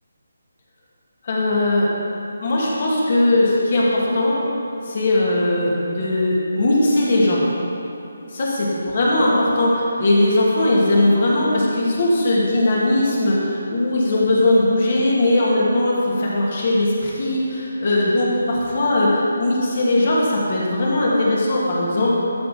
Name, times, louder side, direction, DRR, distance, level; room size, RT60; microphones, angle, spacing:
voice 1, 1.2-1.9 2.4-4.4 4.9-7.5 8.3-22.2, left 1 dB, 50° left, -5 dB, 2.4 m, -19 dB
13.0 x 5.0 x 5.1 m, 2.9 s
figure-of-eight pair, 160°, 0 cm